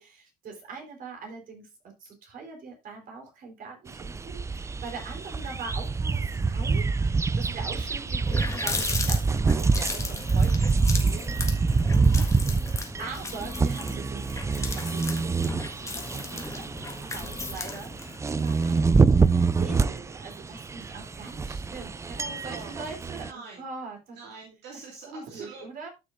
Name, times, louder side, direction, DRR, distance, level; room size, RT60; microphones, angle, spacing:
voice 1, 0.0-12.2 13.0-23.3 23.6-24.2 25.1-25.9, right 4 dB, 55° right, 1 dB, 4.2 m, -42 dB
sound 1, 3.9-23.3, right 4 dB, 15° right, 0.4 m, -26 dB
voice 2, 7.5-7.8 8.2-8.5 12.2-12.7 13.4-13.5 22.2-22.9 23.2-23.7 24.1-25.6, right 4 dB, 80° right, -1 dB, 2.7 m, -45 dB
Water tap faucet, 7.7-7.8 8.1-18.2, left 3 dB, 15° left, 1.6 m, -36 dB
13.0 x 6.6 x 2.6 m, 0.24 s
cardioid pair, 110°, 17 cm